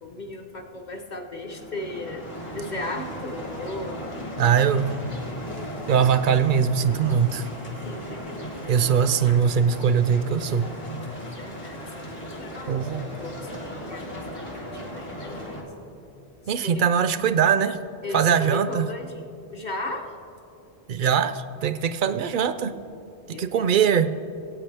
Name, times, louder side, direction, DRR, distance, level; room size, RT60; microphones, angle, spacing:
voice 1, 0.0-4.0 7.8-8.6 11.4-11.8 12.2-15.7 16.6-16.9 18.0-19.2 19.5-20.1 23.3-23.7, left 2 dB, 45° left, 3 dB, 1.1 m, -36 dB
sound 1, 1.4-15.6, equal, 60° left, 2.3 m, -36 dB
voice 2, 4.4-5.0 5.9-7.5 8.7-10.7 12.7-13.1 16.5-17.8 18.1-18.9 20.9-22.8 23.3-24.2, right 7 dB, 60° right, 12 dB, 0.6 m, -21 dB
21.0 x 8.6 x 3.4 m, 2.6 s
omnidirectional pair, 1.1 m